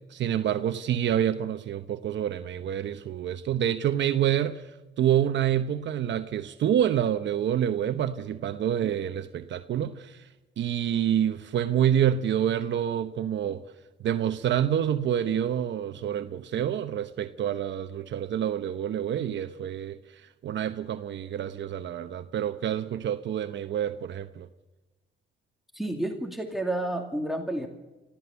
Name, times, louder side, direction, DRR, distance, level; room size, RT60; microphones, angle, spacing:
voice 1, 0.0-10.3 10.6-13.6 14.0-24.5, right 10 dB, 65° right, 9 dB, 1.0 m, -27 dB
voice 2, 25.7-27.7, right 1 dB, ahead, 3 dB, 2.5 m, -30 dB
25.0 x 15.5 x 7.0 m, 1.1 s
cardioid pair, 90°, 20 cm